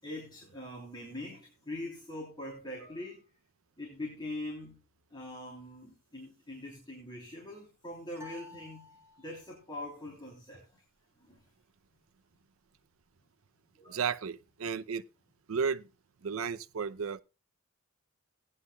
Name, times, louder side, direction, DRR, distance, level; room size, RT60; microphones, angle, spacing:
voice 1, 0.0-3.3 3.8-4.8 5.1-10.8 11.2-11.4 13.7-14.0, left 1 dB, 20° left, 3.1 m, -43 dB
sound 1, 8.2-9.6, left 4 dB, 15° right, 1.5 m, -52 dB
voice 2, 13.9-15.0 15.5-15.9 16.2-17.2, right 6 dB, 85° right, 0.6 m, -33 dB
17.5 x 9.9 x 2.3 m
head